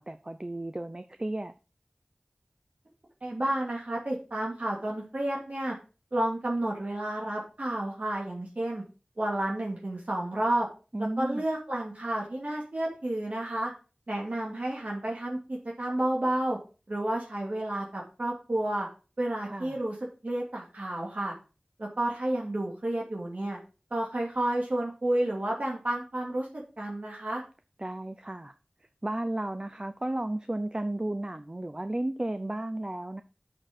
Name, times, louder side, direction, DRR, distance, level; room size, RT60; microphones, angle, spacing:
voice 1, 0.0-1.5 10.9-11.4 19.4-19.8 27.8-28.5 29.0-33.2, right 1 dB, 30° right, 10 dB, 0.6 m, -33 dB
voice 2, 3.2-5.7 6.1-8.8 9.2-10.7 11.0-13.7 14.1-16.6 16.9-18.9 19.2-19.9 20.2-21.3 21.8-23.6 23.9-26.5 26.8-27.4, right 1 dB, 70° right, -3 dB, 2.7 m, -31 dB
6.7 x 6.5 x 6.1 m, 0.34 s
wide cardioid pair, 45°, 3 cm